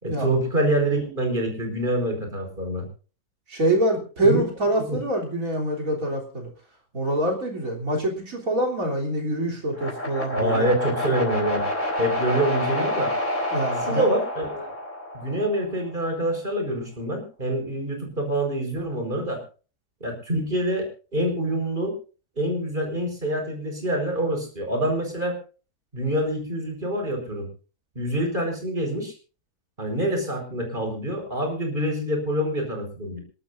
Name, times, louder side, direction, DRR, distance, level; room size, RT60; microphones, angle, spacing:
voice 1, 0.0-2.8 4.2-4.4 4.8-5.0 10.3-11.6 12.0-13.1 13.8-14.7 15.1-19.4 20.0-21.9 22.4-25.4 25.9-27.5 27.9-29.1 29.8-33.2, right 1 dB, 35° right, 2 dB, 5.0 m, -26 dB
voice 2, 3.5-6.5 6.9-10.7 13.5-14.0, right 1 dB, 65° right, 0 dB, 3.9 m, -25 dB
sound 1, 9.7-15.9, left 1 dB, 30° left, 4.2 m, -28 dB
27.5 x 12.0 x 2.6 m, 0.36 s
omnidirectional pair, 1.6 m